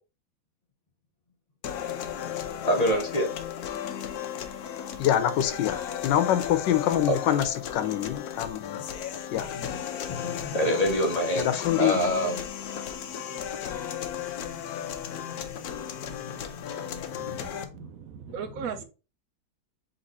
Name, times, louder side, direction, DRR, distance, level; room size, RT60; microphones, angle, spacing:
sound 1, 1.6-17.6, left 9 dB, 70° left, 1.0 m, -35 dB
voice 1, 2.4-3.3 10.1-12.4 13.7-13.9 14.3-17.8, equal, 40° left, 0.6 m, -29 dB
voice 2, 5.0-8.8 9.3-9.5 11.3-12.0, left 11 dB, 90° left, 1.3 m, -25 dB
voice 3, 17.1-18.8, right 7 dB, 65° right, 0.9 m, -38 dB
4.1 x 3.2 x 4.0 m
omnidirectional pair, 1.9 m